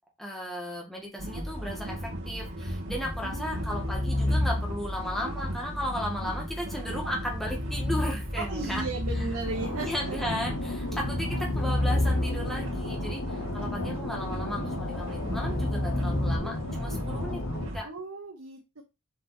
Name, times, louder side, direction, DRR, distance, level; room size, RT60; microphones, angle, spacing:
voice 1, 0.2-8.8 9.1-9.3 9.8-17.4 17.7-17.9, left 1 dB, ahead, -2 dB, 2.1 m, -35 dB
sound 1, 1.2-17.8, equal, 60° right, 2.7 m, -36 dB
sound 2, 2.7-5.0 7.1-9.7 10.3-12.8 14.8-16.4, left 1 dB, 20° left, 0.8 m, -31 dB
voice 2, 3.2-4.2 8.4-10.2 11.3-11.6 17.8-18.8, right 3 dB, 90° right, 2 dB, 1.2 m, -37 dB
sound 3, 9.4-17.7, left 2 dB, 80° left, 0.9 m, -35 dB
7.4 x 4.1 x 4.2 m, 0.26 s
head